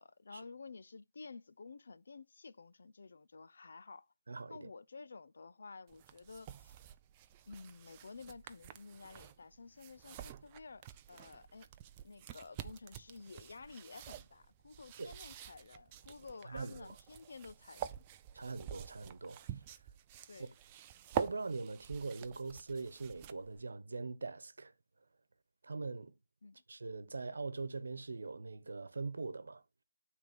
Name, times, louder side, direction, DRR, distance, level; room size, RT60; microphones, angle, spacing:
voice 1, 0.0-4.1 4.5-6.7 7.5-11.7 12.0-18.0 20.3-20.5 26.4-26.6, left 4 dB, 55° left, 0.5 m, -52 dB
voice 2, 4.3-4.7 15.0-15.1 16.4-16.9 18.3-19.6 21.1-24.7 25.6-26.2 26.7-29.6, right 3 dB, 70° right, 1.1 m, -42 dB
sound 1, 5.9-23.6, right 10 dB, 15° right, 0.3 m, -47 dB
9.2 x 3.5 x 5.2 m
hypercardioid pair, 175°, 0 cm